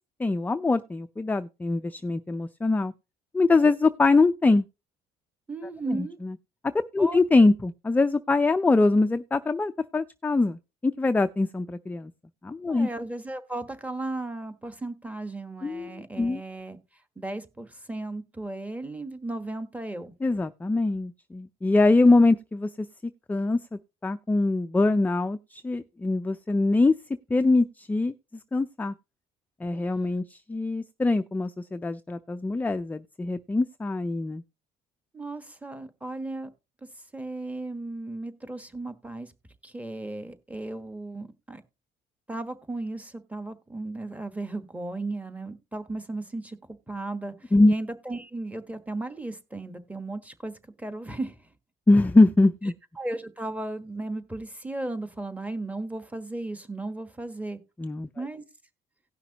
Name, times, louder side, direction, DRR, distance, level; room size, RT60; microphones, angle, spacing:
voice 1, 0.2-2.9 3.3-4.6 6.0-6.3 6.9-12.1 12.4-12.9 15.6-15.9 16.2-16.4 20.2-22.9 23.3-26.9 27.3-28.1 28.5-28.9 29.6-34.4 47.5-47.7 51.9-52.7 57.8-58.1, left 3 dB, 10° left, 0.4 m, -23 dB
voice 2, 5.5-6.2 7.0-7.2 12.7-16.8 17.2-20.1 35.1-36.5 37.1-39.3 39.6-41.6 42.3-46.6 46.9-50.5 50.8-51.4 53.0-57.6 58.2-58.4, right 2 dB, 10° right, 1.3 m, -35 dB
17.5 x 5.8 x 2.8 m
cardioid pair, 110°, 17 cm